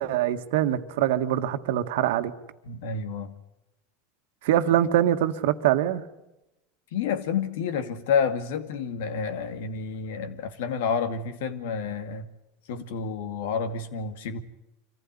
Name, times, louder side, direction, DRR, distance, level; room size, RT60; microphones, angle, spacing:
voice 1, 0.0-2.3 4.4-6.0, right 12 dB, 75° right, 8 dB, 1.7 m, -23 dB
voice 2, 2.6-3.3 6.9-12.3 12.7-14.4, left 6 dB, 75° left, 10 dB, 2.3 m, -29 dB
25.5 x 15.5 x 9.9 m, 0.93 s
supercardioid pair, 110°, 0 cm